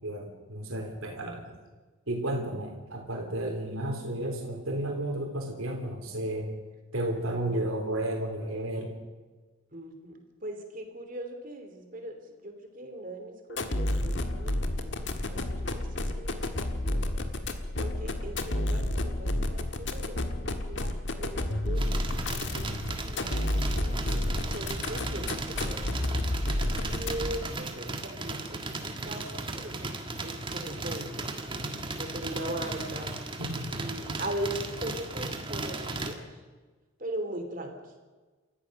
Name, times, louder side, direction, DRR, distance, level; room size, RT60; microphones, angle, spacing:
voice 1, 0.0-1.6 2.1-6.5 6.9-9.0 20.7-20.9 33.4-33.9, right 1 dB, 85° right, 1 dB, 3.6 m, -33 dB
voice 2, 9.7-20.5 21.2-26.2 26.8-33.2 33.7-36.4 37.0-37.9, right 1 dB, 40° right, 5 dB, 2.9 m, -40 dB
sound 1, 13.5-27.5, left 1 dB, 55° left, 1.6 m, -31 dB
sound 2, 21.8-36.1, right 2 dB, 25° right, 1.5 m, -36 dB
28.5 x 14.0 x 6.5 m, 1.3 s
head